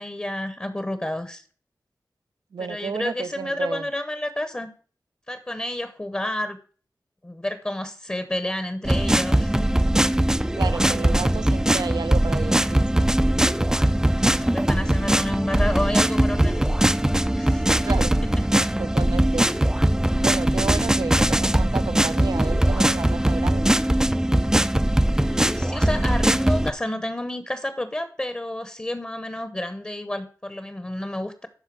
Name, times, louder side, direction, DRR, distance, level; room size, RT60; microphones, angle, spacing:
voice 1, 0.0-1.4 2.6-4.7 5.3-6.6 7.2-9.8 14.2-16.7 17.3-17.9 25.2-31.5, left 1 dB, 20° left, 11 dB, 0.8 m, -30 dB
voice 2, 2.5-3.9 10.6-13.0 17.8-18.2 18.8-19.5 20.2-23.7, right 5 dB, 80° right, 13 dB, 0.6 m, -32 dB
sound 1, 8.8-26.7, right 1 dB, 10° right, 0.4 m, -21 dB
12.0 x 4.4 x 5.9 m, 0.43 s
wide cardioid pair, 70°, 7 cm